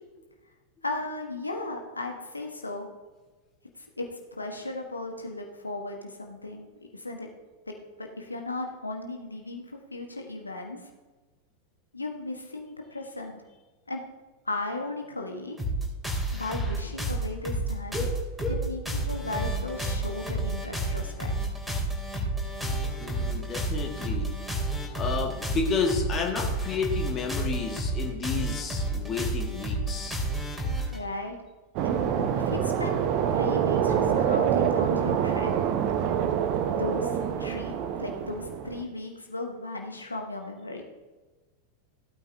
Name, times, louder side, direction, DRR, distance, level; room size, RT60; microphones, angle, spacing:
voice 1, 0.8-2.9 4.0-6.7 6.9-7.3 7.7-9.6 9.9-10.9 11.9-13.4 13.9-14.0 14.4-15.6 16.3-18.1 18.5-21.3 30.9-31.3 31.8-31.9 32.3-33.0 33.3-35.5 36.8-37.7 38.0-40.8, left 2 dB, 80° left, 3 dB, 1.2 m, -36 dB
sound 1, 15.6-31.0, right 1 dB, ahead, 2.8 m, -30 dB
voice 2, 23.0-24.3 25.0-30.2, left 5 dB, 25° left, 1 dB, 1.7 m, -31 dB
sound 2, 31.8-38.8, right 8 dB, 40° right, 0.8 m, -26 dB
16.0 x 8.7 x 2.7 m, 1.2 s
figure-of-eight pair, 90°, 0 cm